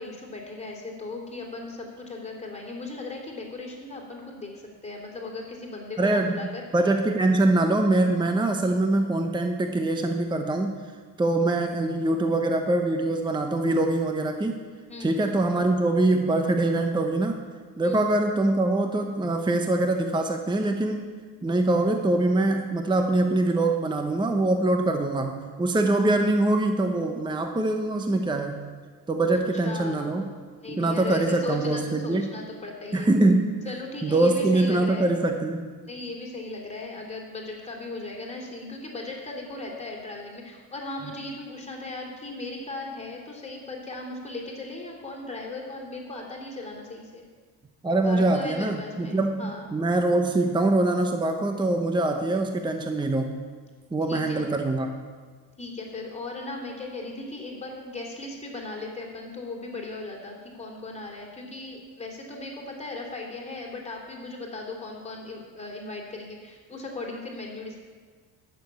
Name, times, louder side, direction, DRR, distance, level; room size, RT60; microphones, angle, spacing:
voice 1, 0.0-4.5 4.8-6.6 14.9-15.2 17.8-18.1 29.6-30.2 30.6-33.1 33.6-35.1 35.9-47.2 48.0-49.7 54.1-54.5 55.6-67.8, left 2 dB, 15° left, -1 dB, 3.0 m, -37 dB
voice 2, 6.0-6.4 6.7-10.7 11.2-14.6 15.0-17.4 17.8-21.1 21.4-28.6 29.1-30.2 30.7-32.3 32.9-33.6 34.0-35.7 47.8-53.4 53.9-54.9, right 2 dB, 10° right, 5 dB, 0.8 m, -23 dB
11.0 x 6.9 x 8.6 m, 1.5 s
cardioid pair, 105°, 40 cm